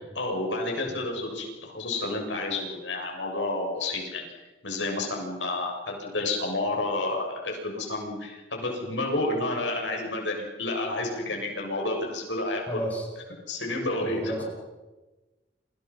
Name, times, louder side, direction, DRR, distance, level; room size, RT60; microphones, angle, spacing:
voice 1, 0.0-4.2 4.6-12.6 13.5-14.3, left 2 dB, 85° left, 1 dB, 7.3 m, -30 dB
voice 2, 12.7-13.1 14.0-14.4, right 1 dB, 10° left, -1 dB, 7.3 m, -33 dB
29.5 x 26.5 x 5.7 m, 1.2 s
head